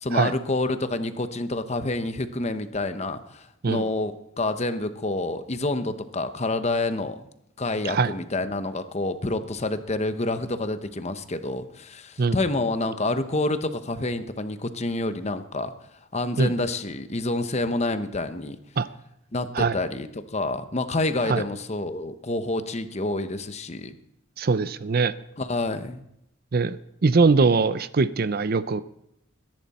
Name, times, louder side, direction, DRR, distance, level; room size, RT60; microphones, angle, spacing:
voice 1, 0.0-7.2 7.6-15.7 16.1-18.6 19.3-24.0 25.4-26.0, left 2 dB, 35° left, 10 dB, 0.9 m, -28 dB
voice 2, 24.4-25.1 26.5-28.8, right 4 dB, 50° right, 15 dB, 0.5 m, -22 dB
21.5 x 11.0 x 4.2 m, 0.81 s
head